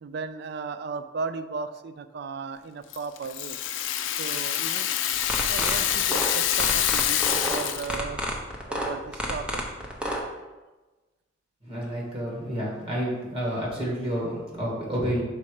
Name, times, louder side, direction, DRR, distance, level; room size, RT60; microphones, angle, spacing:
voice 1, 0.0-3.6 4.2-4.9 5.5-8.2 8.7-9.6, right 4 dB, 55° right, 11 dB, 0.4 m, -35 dB
Rattle (instrument), 2.9-8.0, left 11 dB, 80° left, 0.5 m, -26 dB
sound 1, 5.1-10.2, equal, 5° right, 0.8 m, -30 dB
voice 2, 11.6-15.2, equal, 30° right, -4 dB, 2.0 m, -29 dB
6.0 x 4.2 x 5.0 m, 1.2 s
head